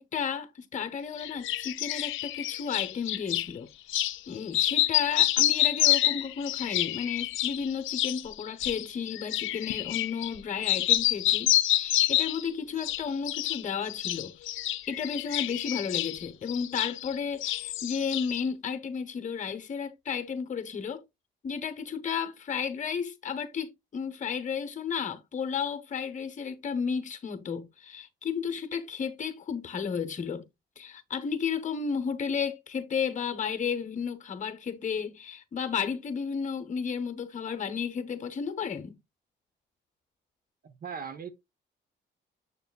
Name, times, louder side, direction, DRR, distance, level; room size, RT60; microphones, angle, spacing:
voice 1, 0.0-3.7 4.3-14.3 14.9-21.0 21.4-30.4 30.8-39.0, left 6 dB, 40° left, 1.0 m, -33 dB
sound 1, 1.2-3.5 3.9-4.2 4.5-10.4 10.6-12.5 12.8-13.6 13.9-17.2 17.4-18.4, left 14 dB, 80° left, 0.5 m, -28 dB
voice 2, 40.6-41.3, right 6 dB, 45° right, 0.9 m, -39 dB
6.8 x 6.7 x 2.3 m
cardioid pair, 90°, 20 cm